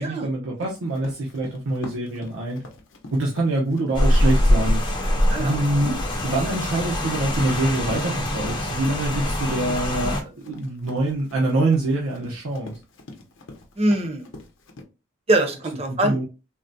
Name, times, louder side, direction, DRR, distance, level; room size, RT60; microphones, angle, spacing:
voice 1, 0.0-2.6 3.1-4.8 5.4-5.9 6.2-12.8 16.0-16.2, right 2 dB, 90° right, -2 dB, 0.6 m, -25 dB
Run, 0.6-14.8, left 2 dB, 70° left, 0.6 m, -45 dB
Rain, 3.9-10.2, left 1 dB, 20° left, 0.5 m, -23 dB
voice 2, 5.3-5.6 5.8-5.9 13.8-14.2 15.3-16.2, right 1 dB, 30° right, 4 dB, 0.6 m, -23 dB
3.6 x 2.0 x 2.5 m, 0.30 s
head